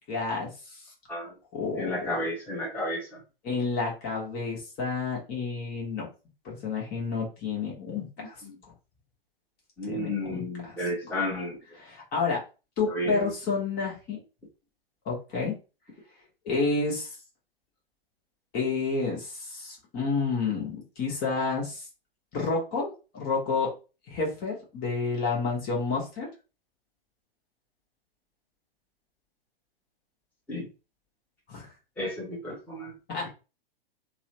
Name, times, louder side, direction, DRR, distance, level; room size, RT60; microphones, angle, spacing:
voice 1, 0.1-0.8 1.5-2.1 3.4-6.1 6.4-8.4 9.8-10.8 11.8-12.4 12.8-14.2 15.0-15.5 16.4-17.2 18.5-21.9 22.3-23.7 24.1-26.3 31.5-31.7 33.1-33.3, left 4 dB, 30° left, -3 dB, 1.2 m, -30 dB
voice 2, 1.8-3.2 8.2-8.6 9.8-11.6 12.9-13.2 30.5-30.7 32.0-32.9, left 1 dB, 5° left, -6 dB, 1.1 m, -32 dB
3.1 x 2.1 x 2.9 m, 0.32 s
figure-of-eight pair, 105°, 29 cm